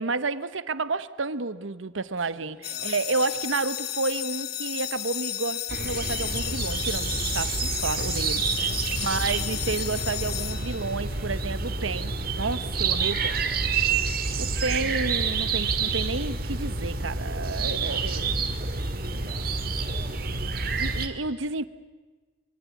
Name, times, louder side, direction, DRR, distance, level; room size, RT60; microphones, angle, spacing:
voice 1, 0.0-8.4 9.0-13.3 14.4-18.2 20.8-21.6, right 3 dB, 85° right, 15 dB, 1.0 m, -30 dB
voice 2, 2.2-3.2 8.2-9.1 13.0-14.6 17.8-20.5, right 2 dB, 30° right, -3 dB, 5.9 m, -50 dB
sound 1, 2.6-11.3, left 12 dB, 55° left, 1.3 m, -33 dB
sound 2, 5.7-21.1, right 4 dB, 50° right, 1.9 m, -28 dB
24.5 x 23.0 x 8.4 m, 1.4 s
head